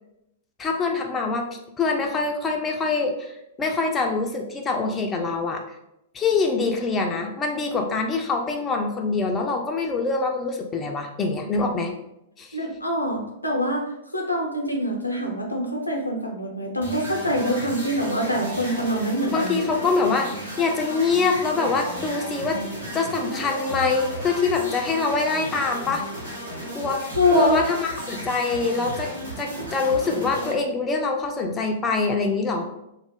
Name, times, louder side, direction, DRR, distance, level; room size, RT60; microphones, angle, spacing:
voice 1, 0.6-5.6 6.1-11.9 12.4-12.6 19.3-22.6 22.9-26.0 26.7-29.1 29.4-32.7, left 4 dB, 20° left, 2 dB, 0.3 m, -24 dB
voice 2, 12.5-19.6 27.1-27.6, equal, 90° left, 0 dB, 0.5 m, -24 dB
sound 1, 16.8-30.5, right 1 dB, 80° right, 0.9 m, -34 dB
2.3 x 2.0 x 3.4 m, 0.85 s
figure-of-eight pair, 105°, 0 cm